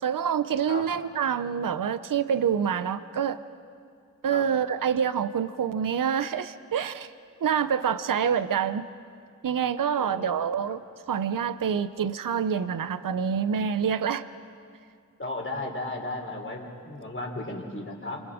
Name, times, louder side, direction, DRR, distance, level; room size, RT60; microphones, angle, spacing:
voice 1, 0.0-3.4 4.2-7.1 7.4-8.9 9.4-10.8 11.1-14.2, right 7 dB, 70° right, 13 dB, 0.7 m, -26 dB
voice 2, 9.9-10.5 15.2-18.2, left 2 dB, 35° left, 1 dB, 3.9 m, -35 dB
28.0 x 26.5 x 5.0 m, 2.3 s
wide cardioid pair, 70°, 34 cm